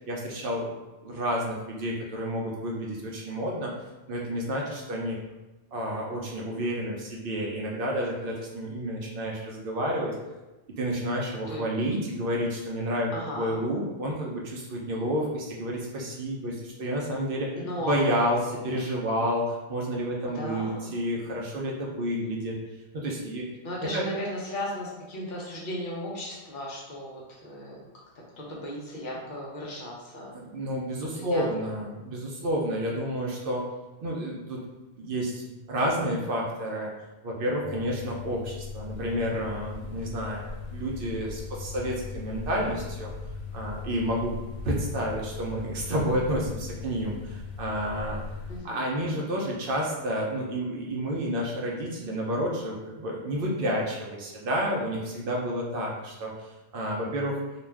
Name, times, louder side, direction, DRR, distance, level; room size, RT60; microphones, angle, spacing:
voice 1, 0.1-0.7 1.0-3.7 4.1-5.2 5.7-10.1 10.8-22.6 22.9-23.5 23.8-24.1 30.3-33.6 34.0-34.6 35.0-36.9 37.2-43.1 43.5-44.3 44.6-48.2 48.6-57.4, equal, 65° right, -2 dB, 0.7 m, -30 dB
voice 2, 13.1-13.6 17.6-18.0 20.3-20.9 23.6-27.8 28.4-30.3 31.1-31.4 48.5-49.1, left 1 dB, 60° left, -4 dB, 0.7 m, -36 dB
sound 1, 37.6-48.6, left 5 dB, 75° left, 1.0 m, -38 dB
2.4 x 2.2 x 3.2 m, 1.1 s
omnidirectional pair, 1.1 m